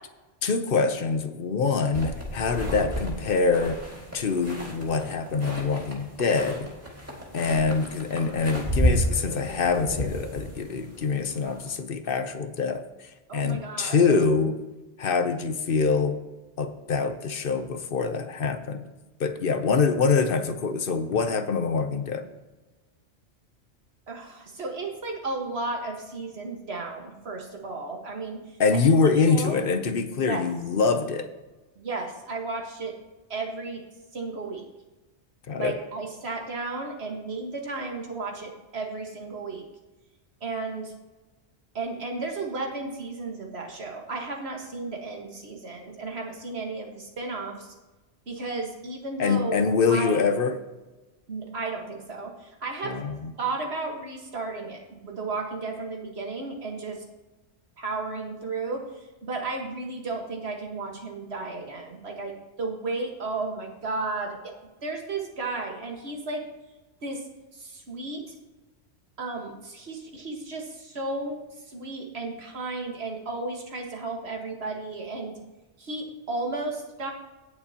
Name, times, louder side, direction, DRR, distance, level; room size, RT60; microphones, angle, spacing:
voice 1, 0.4-3.8 4.1-6.7 7.3-14.6 15.0-16.2 16.6-18.8 19.2-22.2 28.6-31.3 35.5-35.7 49.2-50.6 52.8-53.3, left 4 dB, 55° left, 9 dB, 0.9 m, -25 dB
sound 1, 1.9-11.7, right 1 dB, 15° right, 2.0 m, -32 dB
voice 2, 13.3-14.0 24.1-28.8 29.3-29.6 30.3-30.4 31.8-32.9 33.3-33.8 34.1-34.6 35.6-39.7 40.4-40.9 41.7-47.7 48.3-49.6 49.9-50.3 51.3-53.0 53.4-57.0 57.8-58.8 59.2-62.3 62.6-64.4 64.8-66.4 67.0-67.2 67.5-68.3 69.2-71.4 71.7-75.3 75.8-77.1, right 3 dB, 65° right, 1 dB, 1.9 m, -33 dB
17.0 x 6.8 x 2.9 m, 1.1 s
omnidirectional pair, 1.2 m